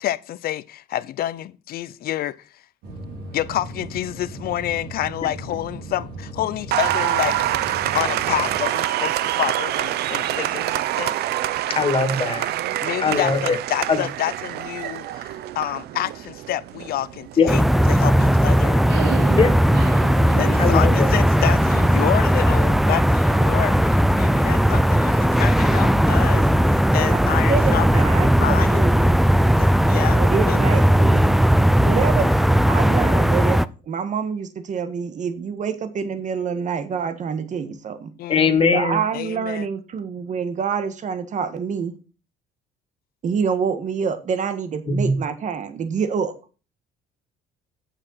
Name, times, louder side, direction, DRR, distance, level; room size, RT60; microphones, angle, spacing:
voice 1, 0.0-2.5 3.3-7.4 7.9-11.2 12.8-17.6 17.9-18.8 20.4-28.0 28.4-28.8 29.6-30.2 30.4-30.6 38.2-38.7 39.1-39.7, left 13 dB, 65° left, 0.7 m, -28 dB
sound 1, 2.8-8.6, right 1 dB, 90° right, 4.0 m, -37 dB
Applause, 6.7-22.0, right 13 dB, 70° right, 0.7 m, -27 dB
voice 2, 11.8-12.5 13.0-13.6 13.9-14.0 17.4-17.5 19.3-19.5 20.6-21.1 38.3-39.0 44.9-45.2, left 4 dB, 30° left, 2.2 m, -20 dB
sound 2, 17.5-33.7, equal, ahead, 0.4 m, -17 dB
voice 3, 27.0-29.2 30.1-31.4 31.8-32.3 32.7-38.1 38.7-41.9 43.2-46.3, right 6 dB, 45° right, 1.6 m, -26 dB
8.7 x 6.9 x 5.7 m
cardioid pair, 110°, 17 cm